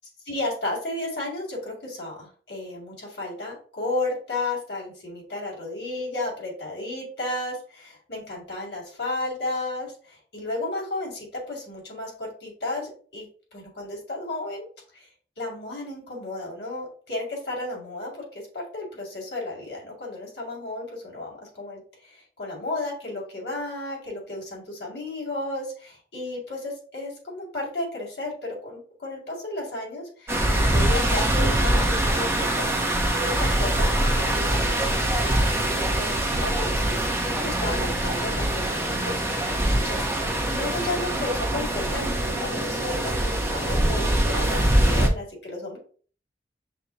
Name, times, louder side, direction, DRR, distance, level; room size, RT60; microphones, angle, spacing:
voice 1, 0.3-13.3 13.5-14.7 14.9-15.1 15.4-34.9 35.2-45.8, left 2 dB, 70° left, -2 dB, 2.3 m, -33 dB
sound 1, 30.3-45.1, right 1 dB, 15° right, 0.8 m, -23 dB
6.0 x 2.2 x 3.9 m, 0.43 s
head